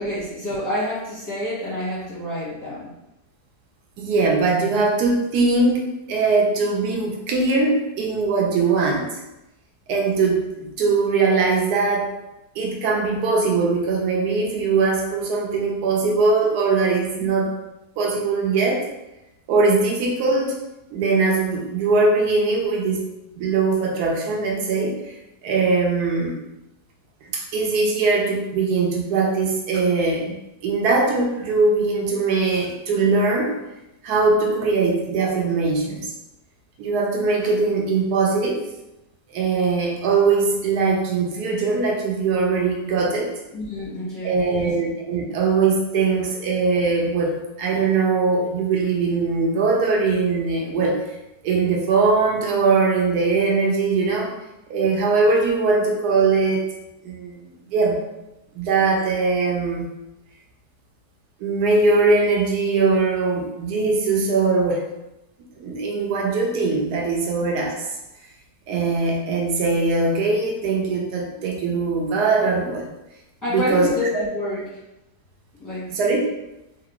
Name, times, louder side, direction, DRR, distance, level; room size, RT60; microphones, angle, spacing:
voice 1, 0.0-2.9 17.2-17.3 43.5-44.7 73.4-74.6 75.6-76.0, left 1 dB, 15° left, -9 dB, 0.8 m, -28 dB
voice 2, 4.0-9.1 9.9-12.1 12.6-17.5 18.0-18.8 19.5-20.6 20.9-23.1 23.4-25.0 25.4-26.4 27.3-33.6 34.0-36.1 36.8-38.6 39.3-43.3 44.2-51.0 51.4-54.4 54.7-56.6 57.0-58.0 58.5-59.8 61.4-64.8 65.6-67.8 68.7-72.9 73.5-73.9 74.2-74.3 75.9-76.2, right 4 dB, 70° right, 0 dB, 1.2 m, -21 dB
3.3 x 2.5 x 2.9 m, 0.92 s
omnidirectional pair, 1.9 m